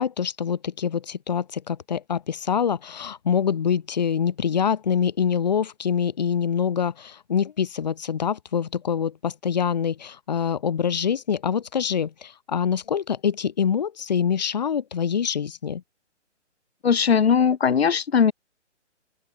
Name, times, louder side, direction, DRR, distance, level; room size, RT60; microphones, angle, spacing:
voice 1, 0.0-15.8, left 7 dB, 35° left, 1.8 m, -25 dB
voice 2, 16.8-18.3, left 7 dB, 60° left, 1.3 m, -19 dB
open air
hypercardioid pair, 175°, 36 cm